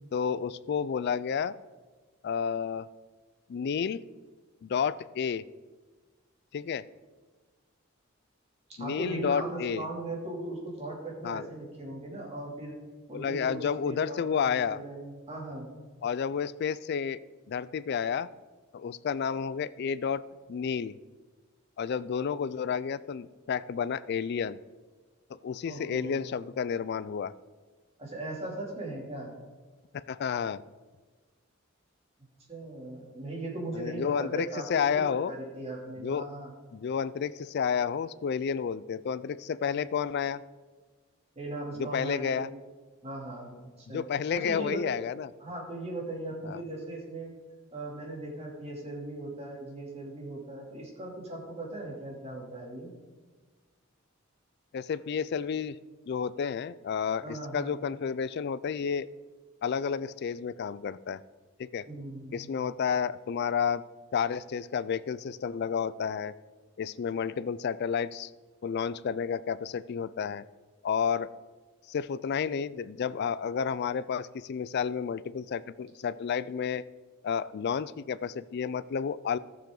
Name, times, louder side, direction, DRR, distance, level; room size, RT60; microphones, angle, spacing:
voice 1, 0.1-1.5 2.2-2.9 3.5-4.0 4.6-5.4 6.5-6.8 8.8-9.9 11.2-11.4 13.1-14.8 16.0-17.2 17.5-18.3 18.7-20.2 20.5-21.0 21.8-24.6 25.3-27.3 29.9-30.6 33.7-35.3 36.0-36.3 36.7-40.4 41.8-42.5 43.9-45.3 46.4-46.6 54.7-55.8 56.1-59.1 59.6-61.2 61.6-61.8 62.3-63.8 64.1-66.3 66.8-68.3 68.6-70.4 70.8-71.3 71.9-76.8 77.2-79.4, left 7 dB, 55° left, 17 dB, 0.3 m, -31 dB
voice 2, 8.8-12.7 13.1-15.7 25.6-26.2 28.0-29.3 32.5-36.5 41.4-42.6 43.0-44.0 44.3-45.0 45.4-47.3 47.7-52.9 57.2-57.7 61.9-62.3, right 2 dB, 30° right, -3 dB, 2.7 m, -38 dB
14.5 x 6.9 x 3.8 m, 1.4 s
head